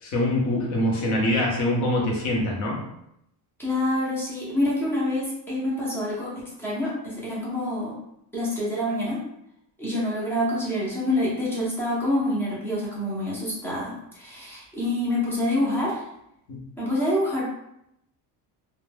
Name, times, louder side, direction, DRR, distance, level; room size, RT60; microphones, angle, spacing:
voice 1, 0.0-2.8 16.5-16.6, left 1 dB, 40° left, -2 dB, 0.7 m, -24 dB
voice 2, 3.6-6.3 6.6-7.9 8.3-9.2 9.8-16.0 16.8-17.5, left 1 dB, 5° left, -6 dB, 0.5 m, -26 dB
2.1 x 2.1 x 3.2 m, 0.79 s
cardioid pair, 180°, 43 cm